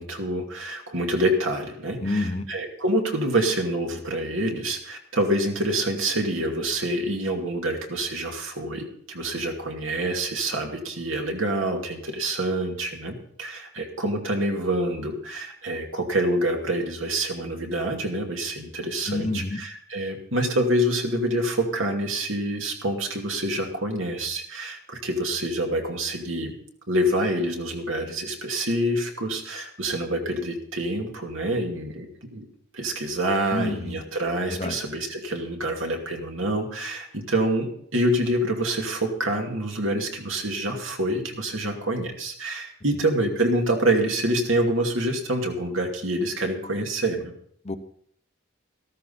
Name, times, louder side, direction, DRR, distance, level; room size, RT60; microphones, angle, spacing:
voice 1, 0.0-26.6 26.9-32.5 32.7-47.3, right 1 dB, 70° right, 2 dB, 2.4 m, -26 dB
voice 2, 2.0-2.5 19.1-19.6 33.5-34.0 34.6-34.8 47.6-47.8, left 2 dB, 30° left, 9 dB, 0.8 m, -28 dB
14.0 x 13.5 x 4.2 m, 0.64 s
head